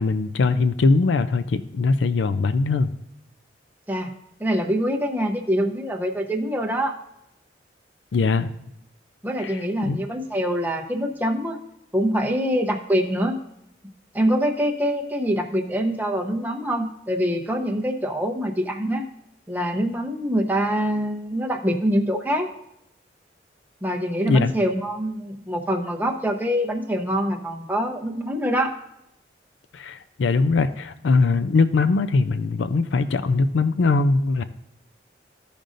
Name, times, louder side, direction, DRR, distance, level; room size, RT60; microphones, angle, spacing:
voice 1, 0.0-2.9 8.1-8.5 9.4-10.0 24.3-24.5 29.7-34.4, left 3 dB, 85° left, 11 dB, 0.4 m, -21 dB
voice 2, 4.4-7.0 9.2-11.6 11.9-13.4 14.1-19.1 19.5-22.5 23.8-28.7, equal, 10° right, 1 dB, 0.8 m, -24 dB
15.5 x 5.2 x 2.5 m, 0.82 s
head